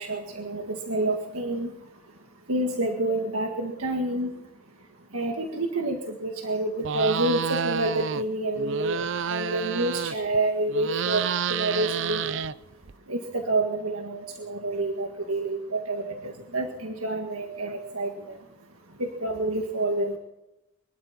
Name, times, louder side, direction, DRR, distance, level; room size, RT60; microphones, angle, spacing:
voice 1, 0.0-1.7 2.5-4.3 5.1-11.2 11.5-12.3 13.1-18.4 19.0-20.2, right 2 dB, 85° right, 3 dB, 1.8 m, -28 dB
sound 1, 6.8-8.2 8.6-10.4 10.7-12.9, right 7 dB, 60° right, 0.5 m, -29 dB
23.5 x 12.0 x 4.3 m, 0.93 s
head